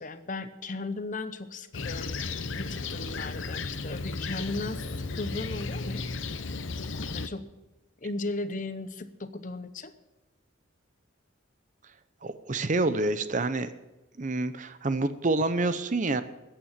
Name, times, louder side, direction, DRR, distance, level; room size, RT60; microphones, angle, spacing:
voice 1, 0.0-2.2 2.6-6.2 7.1-7.5 8.0-9.9, left 2 dB, 40° left, 12 dB, 0.8 m, -36 dB
Fixed-wing aircraft airplane, 1.7-7.3, left 3 dB, 70° left, 0.9 m, -34 dB
voice 2, 12.2-13.7 14.2-16.2, right 2 dB, 40° right, 12 dB, 0.7 m, -27 dB
14.0 x 8.9 x 7.3 m, 1.0 s
head